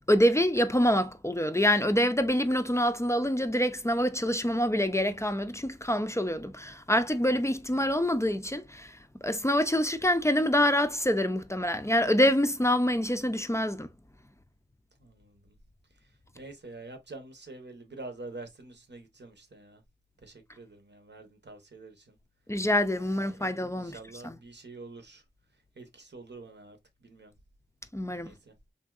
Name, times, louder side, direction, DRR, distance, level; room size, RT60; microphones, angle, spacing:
voice 1, 0.1-9.0 9.2-13.9 22.5-24.4 27.9-28.3, equal, 15° left, 0.4 m, -26 dB
voice 2, 15.0-15.5 16.3-19.8 20.2-22.2 23.0-25.2 25.8-27.3 28.2-28.5, right 2 dB, 85° right, 0.8 m, -47 dB
3.3 x 2.6 x 2.3 m
wide cardioid pair, 45°, 18 cm